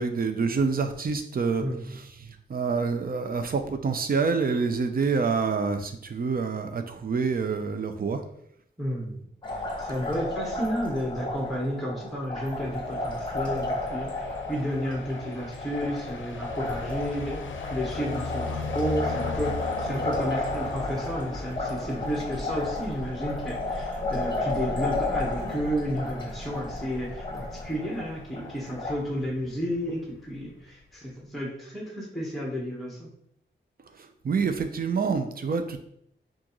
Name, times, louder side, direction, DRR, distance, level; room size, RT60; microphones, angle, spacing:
voice 1, 0.0-1.7 1.9-8.2 34.0-35.8, right 5 dB, 50° right, 7 dB, 0.5 m, -27 dB
voice 2, 8.8-9.2 9.5-17.4 17.7-33.1, equal, ahead, -2 dB, 1.1 m, -32 dB
Liquid, 9.4-29.0, left 2 dB, 25° left, 1.1 m, -33 dB
sound 1, 12.5-30.5, left 4 dB, 80° left, 0.5 m, -40 dB
6.1 x 2.5 x 3.0 m, 0.72 s
wide cardioid pair, 120°, 20 cm